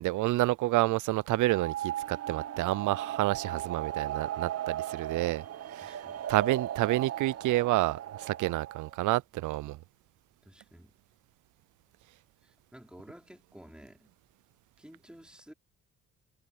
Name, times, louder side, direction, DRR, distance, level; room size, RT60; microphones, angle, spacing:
voice 1, 0.0-5.4 5.7-6.0 6.3-9.8, right 18 dB, 80° right, 0.5 m, -29 dB
sound 1, 1.3-9.0, right 11 dB, 55° right, 0.9 m, -37 dB
voice 2, 5.8-6.2 10.4-10.9 12.4-14.1 14.8-15.5, equal, 5° right, 4.5 m, -53 dB
cardioid pair, 90°, 30 cm